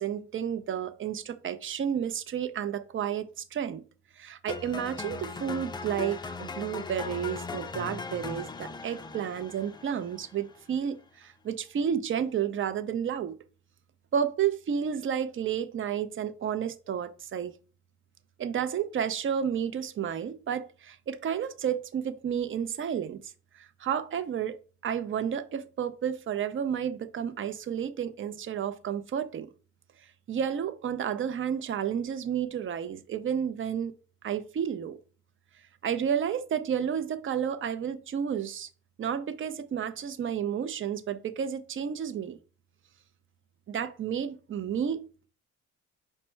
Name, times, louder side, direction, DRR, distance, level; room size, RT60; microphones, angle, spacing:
voice 1, 0.0-3.8 4.2-13.3 14.1-17.5 18.4-29.5 30.3-33.9 34.2-35.0 35.8-38.7 39.0-42.4 43.7-45.3, right 8 dB, 40° right, 0.5 m, -31 dB
sound 1, 4.5-10.6, left 4 dB, 15° left, 0.3 m, -39 dB
5.2 x 2.1 x 4.4 m
cardioid pair, 90°, 30 cm